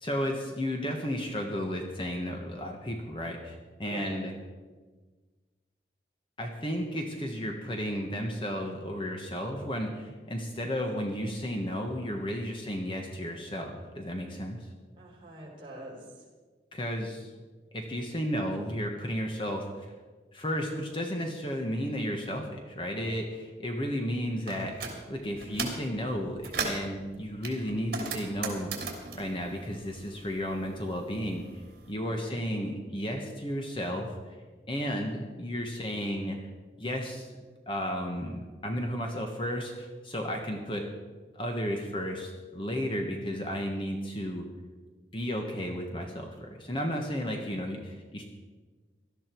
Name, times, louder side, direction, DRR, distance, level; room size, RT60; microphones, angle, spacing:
voice 1, 0.0-4.3 6.4-14.7 16.7-17.3 17.7-19.9 20.3-28.7 29.1-31.4 31.9-34.3 34.7-36.4 36.8-37.3 37.7-40.8 41.3-44.4 45.1-48.3, equal, 30° left, 2 dB, 1.3 m, -33 dB
voice 2, 15.0-16.2 32.0-32.4 47.3-47.8, right 1 dB, 30° right, -3 dB, 3.8 m, -45 dB
sound 1, 24.5-25.0 25.4-25.9 26.2-26.9 27.4-30.4 30.6-31.8, right 4 dB, 55° right, 3.1 m, -36 dB
18.0 x 12.5 x 4.6 m, 1.4 s
head